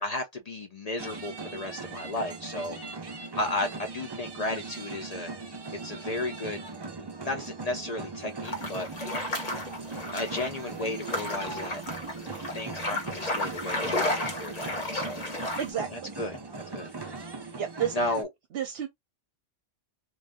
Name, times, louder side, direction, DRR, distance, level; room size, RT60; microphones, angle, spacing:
voice 1, 0.0-2.8 3.4-5.3 5.8-6.6 7.2-8.9 10.1-11.8 12.5-15.2 15.9-16.4 16.7-16.9 17.9-18.3, left 2 dB, 55° left, 0.4 m, -33 dB
sound 1, 1.0-18.2, right 3 dB, 30° right, 0.5 m, -40 dB
sound 2, 8.4-15.7, left 1 dB, 35° left, 0.9 m, -33 dB
voice 2, 15.6-16.1 17.6-18.0 18.5-18.9, right 9 dB, 65° right, 0.8 m, -31 dB
2.6 x 2.3 x 3.4 m
omnidirectional pair, 1.2 m